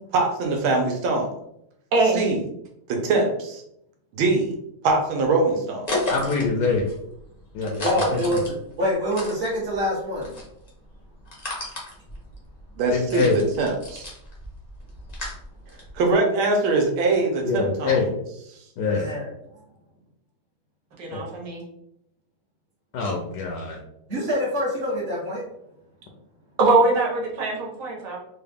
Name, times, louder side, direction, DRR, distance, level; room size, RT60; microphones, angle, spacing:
voice 1, 0.1-1.3 2.1-2.4 2.9-3.6 4.1-4.5 4.8-6.1 12.8-14.1 15.9-18.0, right 3 dB, 80° right, 2 dB, 1.5 m, -23 dB
sound 1, 5.8-9.8 10.1-16.1, left 1 dB, 40° left, 0.5 m, -33 dB
voice 2, 6.1-6.8 7.5-7.8 8.1-8.2 12.9-13.4 17.4-18.1 18.8-19.1 21.1-21.2 22.9-23.8, left 4 dB, 70° left, 1 dB, 1.1 m, -24 dB
voice 3, 7.8-10.3 16.3-16.4 19.0-19.3 24.1-25.4, equal, 40° right, -9 dB, 0.9 m, -26 dB
voice 4, 21.0-21.6 26.6-28.2, right 3 dB, 60° right, -3 dB, 1.6 m, -22 dB
3.9 x 2.3 x 3.4 m, 0.76 s
omnidirectional pair, 2.2 m